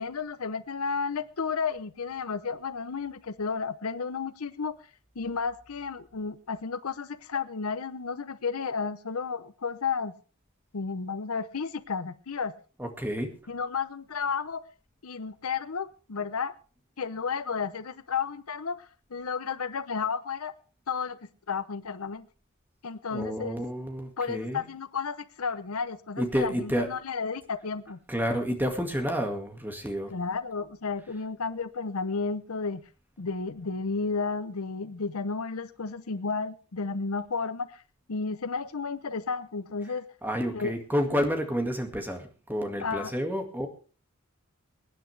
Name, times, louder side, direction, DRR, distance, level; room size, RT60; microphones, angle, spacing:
voice 1, 0.0-4.7 5.1-10.1 10.7-12.5 13.5-14.6 15.0-16.5 17.0-20.5 20.9-21.2 21.5-22.3 22.8-23.6 24.2-28.0 30.1-32.8 33.2-37.8 38.1-40.1 40.5-40.7 42.8-43.2, left 5 dB, 80° left, 13 dB, 0.8 m, -32 dB
voice 2, 12.8-13.3 23.1-24.6 26.2-26.9 28.1-30.1 40.2-43.7, equal, 10° right, 4 dB, 2.0 m, -30 dB
23.5 x 10.0 x 3.3 m, 0.37 s
head